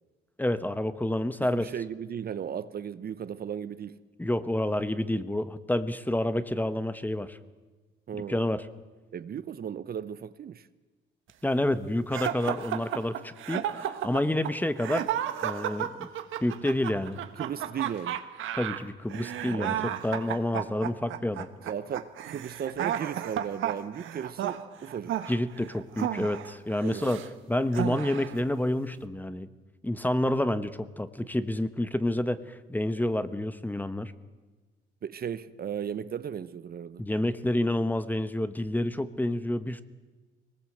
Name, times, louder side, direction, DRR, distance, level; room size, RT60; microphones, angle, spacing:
voice 1, 0.4-1.7 4.2-7.4 8.1-8.6 11.4-15.1 15.4-16.1 16.4-17.2 18.6-21.5 25.3-27.2 27.5-29.5 29.8-32.4 32.7-34.1 37.0-39.8, left 1 dB, 10° left, 1.1 m, -29 dB
voice 2, 1.4-4.0 8.1-8.4 9.1-10.7 17.4-18.2 19.6-19.8 21.6-25.2 26.8-27.1 35.0-37.0, right 8 dB, 50° right, 0.8 m, -36 dB
sound 1, 12.1-27.3 27.7-28.4, right 11 dB, 80° right, 1.3 m, -33 dB
23.0 x 19.5 x 7.9 m
cardioid pair, 90°, 20 cm